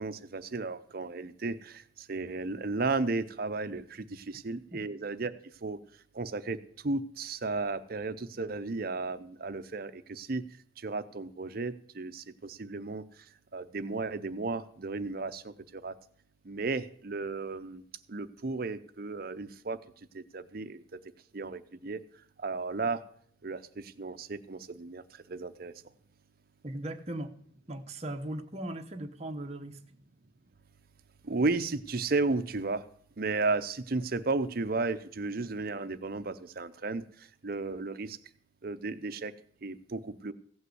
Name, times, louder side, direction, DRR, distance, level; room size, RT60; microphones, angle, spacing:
voice 1, 0.0-5.3 5.6-5.8 6.1-6.6 6.8-10.4 10.8-13.0 13.5-15.9 16.4-17.8 18.1-19.8 20.1-20.8 21.3-22.0 22.4-23.0 23.4-25.0 25.3-25.7 31.2-32.8 33.2-38.2 38.6-39.3 39.6-40.3, right 3 dB, 50° right, 11 dB, 0.6 m, -34 dB
voice 2, 26.6-27.3 27.7-29.8, right 1 dB, 35° right, 5 dB, 1.0 m, -38 dB
16.0 x 5.6 x 7.9 m, 0.62 s
head